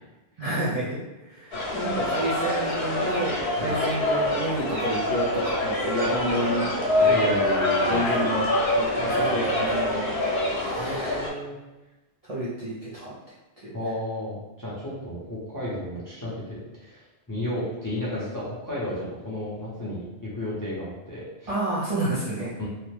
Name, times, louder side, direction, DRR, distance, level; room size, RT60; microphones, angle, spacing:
voice 1, 0.4-6.7 7.0-7.3 7.9-8.4 8.8-10.1 10.5-11.2 12.2-13.1 13.6-13.7 21.5-22.5, right 1 dB, 40° right, -9 dB, 0.6 m, -30 dB
sound 1, 1.5-11.3, left 1 dB, 70° left, 0.9 m, -25 dB
voice 2, 7.1-8.0 9.1-9.5 10.8-11.6 13.7-21.5 22.6-22.7, left 1 dB, 20° left, -9 dB, 0.6 m, -33 dB
2.9 x 2.1 x 3.2 m, 1.1 s
omnidirectional pair, 1.1 m